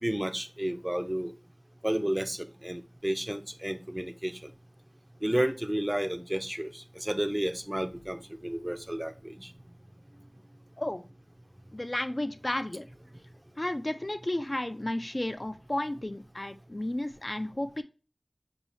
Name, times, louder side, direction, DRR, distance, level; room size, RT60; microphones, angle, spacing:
voice 1, 0.0-1.3 1.8-4.5 5.2-9.5, right 1 dB, 20° right, 8 dB, 0.5 m, -32 dB
voice 2, 11.7-12.9 13.6-17.8, left 1 dB, 45° left, 9 dB, 0.3 m, -33 dB
5.2 x 2.3 x 3.1 m, 0.34 s
wide cardioid pair, 45°, 0 cm